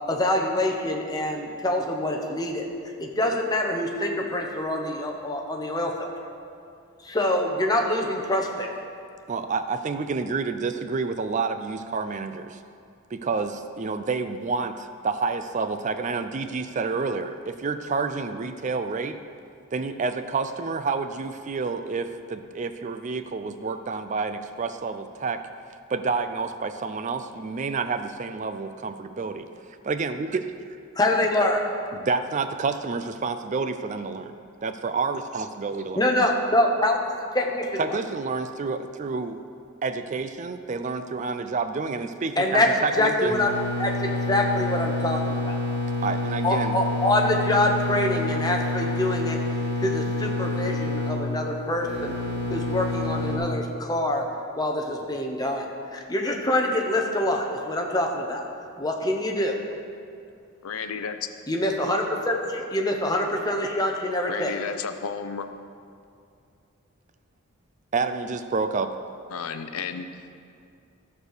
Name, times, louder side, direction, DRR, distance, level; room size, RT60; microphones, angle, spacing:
voice 1, 0.1-2.7 3.0-6.1 7.0-8.7 30.9-31.6 35.9-38.0 42.4-42.7 43.0-43.5 43.8-45.6 46.4-49.4 49.8-52.2 52.5-54.3 54.5-58.5 58.8-59.6 61.5-64.6, left 1 dB, 20° left, 1 dB, 1.0 m, -25 dB
voice 2, 9.3-12.6 13.1-19.2 19.7-25.4 25.9-29.5 29.8-30.5 31.9-34.3 34.6-36.0 37.8-39.4 39.8-43.4 46.0-46.8 67.9-68.9, right 4 dB, 35° right, 9 dB, 0.4 m, -29 dB
sound 1, 43.2-53.4, left 2 dB, 50° right, 2.7 m, -28 dB
voice 3, 60.6-61.2 64.3-65.5 69.3-70.4, left 6 dB, 85° left, 9 dB, 0.6 m, -33 dB
14.0 x 4.8 x 6.5 m, 2.4 s
head